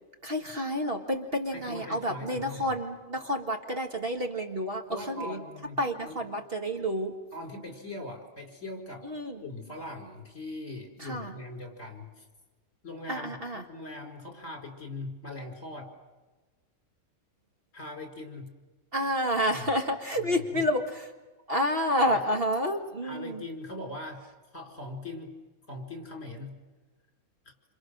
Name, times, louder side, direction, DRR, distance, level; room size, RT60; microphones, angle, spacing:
voice 1, 0.2-5.4 5.8-7.1 9.0-9.4 11.0-11.3 13.1-13.6 18.9-21.1 21.5-23.4, equal, 40° right, 3 dB, 1.8 m, -29 dB
voice 2, 1.5-2.7 4.9-6.2 7.3-9.1 9.4-12.2 12.8-13.3 13.7-15.9 17.7-18.5 19.5-19.7 20.2-20.6 23.0-24.3 24.5-25.4 25.7-26.5, left 2 dB, 55° left, 2 dB, 4.7 m, -41 dB
27.5 x 27.0 x 6.5 m, 1.2 s
omnidirectional pair, 1.6 m